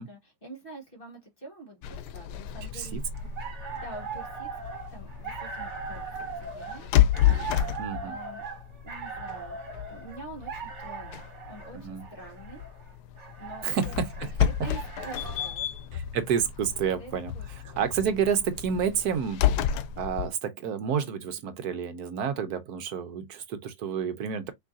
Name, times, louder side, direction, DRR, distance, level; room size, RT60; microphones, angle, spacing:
voice 1, 0.0-3.0 3.8-6.1 6.4-7.5 8.0-8.4 8.8-9.6 9.9-11.2 11.5-12.6 13.4-14.0 14.3-14.4 14.6-16.0 17.0-17.8, right 2 dB, 35° left, 1.8 m, -46 dB
sound 1, 1.8-20.3, left 11 dB, 80° left, 1.2 m, -31 dB
sound 2, 3.1-15.6, right 6 dB, 45° right, 1.7 m, -40 dB
voice 2, 7.8-8.2 11.8-12.0 13.6-14.5 15.9-17.3 17.6-19.4 20.0-24.5, right 7 dB, 70° right, 1.2 m, -29 dB
6.0 x 3.1 x 2.6 m
omnidirectional pair, 1.8 m